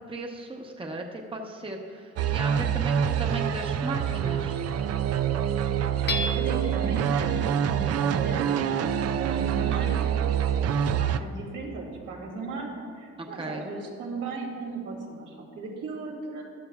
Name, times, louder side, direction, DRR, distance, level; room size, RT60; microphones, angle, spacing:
voice 1, 0.0-4.6 13.2-13.6, right 2 dB, 15° right, 2 dB, 1.0 m, -36 dB
sound 1, 2.2-11.2, right 8 dB, 55° right, 0.5 m, -26 dB
voice 2, 5.8-10.1 10.7-12.7 12.9-16.4, right 3 dB, 85° right, -3 dB, 2.8 m, -37 dB
Hammer / Chink clink, 6.1-6.9, left 3 dB, 35° left, 0.8 m, -31 dB
14.5 x 11.0 x 2.4 m, 2.1 s
cardioid pair, 90°, 30 cm